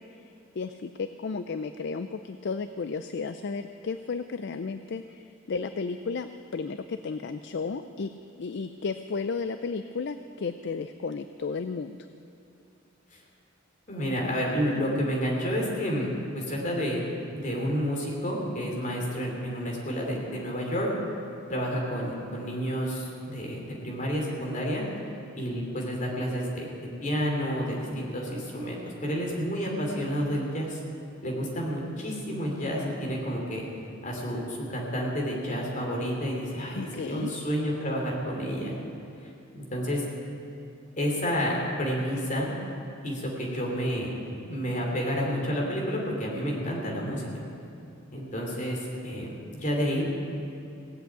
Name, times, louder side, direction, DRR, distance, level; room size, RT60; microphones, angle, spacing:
voice 1, 0.1-8.1 8.4-12.0 36.8-37.3, left 4 dB, 60° left, 10 dB, 0.4 m, -33 dB
voice 2, 13.9-16.1 16.3-17.0 17.3-20.9 21.5-24.8 25.4-26.7 27.0-30.8 31.2-33.6 34.0-38.7 39.7-40.0 41.0-42.5 43.0-44.1 44.5-47.4 48.1-48.8 49.0-50.1, equal, 40° left, -2 dB, 3.1 m, -30 dB
17.5 x 8.1 x 8.9 m, 2.7 s
head